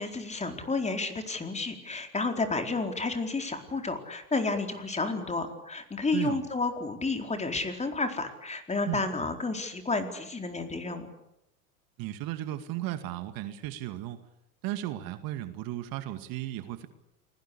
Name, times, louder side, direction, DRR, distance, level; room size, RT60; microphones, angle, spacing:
voice 1, 0.0-11.1, left 3 dB, 15° left, 5 dB, 4.4 m, -31 dB
voice 2, 12.0-14.2 14.6-16.9, right 14 dB, 50° right, 9 dB, 2.3 m, -35 dB
29.0 x 21.0 x 8.6 m, 0.83 s
hypercardioid pair, 90°, 45 cm